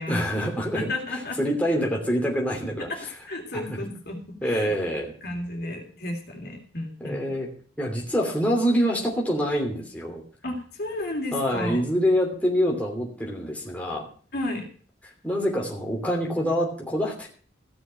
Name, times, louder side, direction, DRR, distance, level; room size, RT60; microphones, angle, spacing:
voice 1, 0.1-2.9 3.5-3.8 4.4-5.1 7.0-7.5 7.8-10.2 11.3-14.1 15.2-17.3, equal, 10° left, -1 dB, 2.9 m, -26 dB
voice 2, 0.7-1.4 2.9-3.0 3.3-4.7 5.2-7.2 10.4-11.8 14.3-14.7, left 1 dB, 60° left, 2 dB, 3.0 m, -32 dB
15.5 x 6.3 x 7.5 m, 0.43 s
head